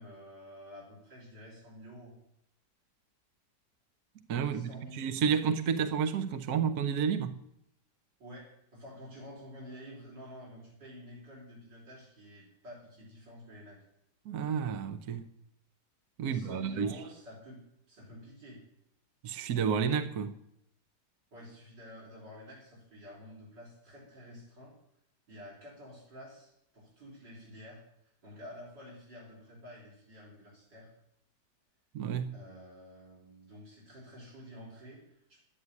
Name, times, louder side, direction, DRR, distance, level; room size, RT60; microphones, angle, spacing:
voice 1, 0.0-2.1 4.4-5.0 8.2-13.8 16.2-17.6 17.9-18.6 21.3-24.8 25.3-30.9 32.3-35.4, equal, 85° right, 5.6 m, -50 dB
voice 2, 4.3-7.4 14.2-15.3 16.2-17.0 19.2-20.3 31.9-32.3, right 7 dB, 65° right, 1.4 m, -31 dB
11.0 x 9.8 x 9.6 m
omnidirectional pair, 1.9 m